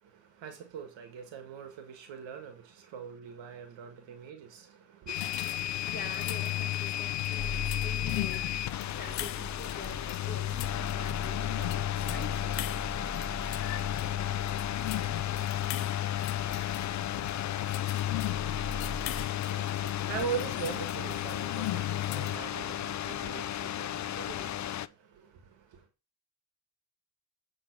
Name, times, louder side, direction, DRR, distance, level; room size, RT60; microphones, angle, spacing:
voice 1, 0.0-5.3 18.4-25.9, right 7 dB, 75° right, 1.8 m, -42 dB
sound 1, 5.1-22.4, left 14 dB, 75° left, 0.7 m, -35 dB
sound 2, 5.1-24.9, left 12 dB, 40° left, 0.5 m, -35 dB
voice 2, 5.9-8.4 9.0-12.6, left 2 dB, 20° left, 2.9 m, -46 dB
sound 3, 7.4-19.3, equal, ahead, 1.3 m, -43 dB
8.4 x 3.8 x 5.9 m
supercardioid pair, 60°, 45 cm